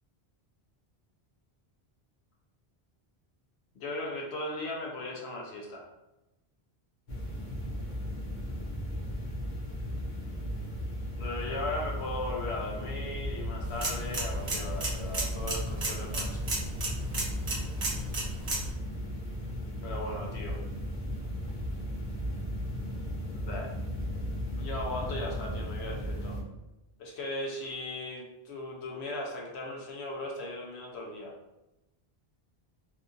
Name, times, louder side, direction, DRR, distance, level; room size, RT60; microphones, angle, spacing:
voice 1, 3.7-5.8 11.2-16.5 19.8-20.6 23.3-23.7 24.6-26.4 27.0-31.3, left 2 dB, 90° left, -1 dB, 0.9 m, -37 dB
sound 1, 7.1-26.4, equal, 50° left, 0.8 m, -36 dB
sound 2, 13.6-18.7, right 2 dB, 40° right, 0.7 m, -34 dB
2.7 x 2.4 x 2.5 m, 0.96 s
omnidirectional pair, 1.1 m